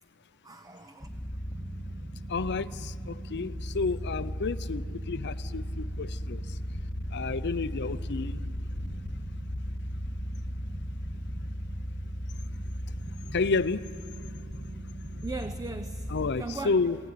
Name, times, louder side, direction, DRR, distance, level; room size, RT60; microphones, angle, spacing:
voice 1, 0.4-1.1 15.2-16.8, right 3 dB, 15° right, 9 dB, 0.6 m, -38 dB
sound 1, 1.0-16.3, equal, 5° left, 1.7 m, -36 dB
voice 2, 2.3-6.4 7.1-8.4 13.3-13.8 16.1-17.0, left 4 dB, 50° left, 14 dB, 0.6 m, -30 dB
27.5 x 17.0 x 9.6 m, 2.5 s
head